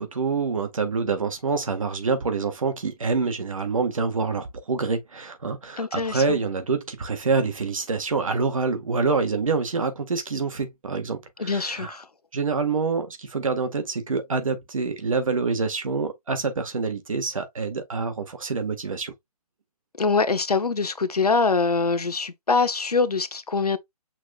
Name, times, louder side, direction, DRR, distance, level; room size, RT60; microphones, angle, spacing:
voice 1, 0.0-12.0 12.3-19.1, right 4 dB, 55° right, 1.6 m, -26 dB
voice 2, 5.8-6.4 11.4-12.1 20.0-23.8, left 4 dB, 75° left, 0.9 m, -24 dB
6.3 x 3.6 x 2.4 m
figure-of-eight pair, 140°, 20 cm